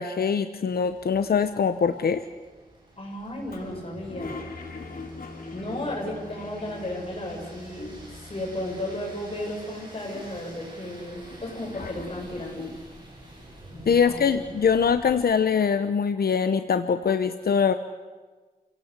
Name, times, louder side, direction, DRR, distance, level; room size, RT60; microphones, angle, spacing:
voice 1, 0.0-2.2 13.9-17.7, left 6 dB, 85° left, 10 dB, 1.0 m, -23 dB
sound 1, 0.7-15.2, right 1 dB, 30° right, 8.0 m, -49 dB
voice 2, 3.0-4.4 5.5-7.9 8.2-12.7 13.7-14.3, left 1 dB, 40° left, -1 dB, 7.7 m, -34 dB
sound 2, 3.2-10.6, left 1 dB, 5° left, 6.6 m, -47 dB
Toilet flush, 3.5-7.8 8.1-8.2 8.4-9.3 9.8-12.6, left 4 dB, 70° left, 4.0 m, -43 dB
30.0 x 17.5 x 8.3 m, 1.3 s
wide cardioid pair, 105°, 16 cm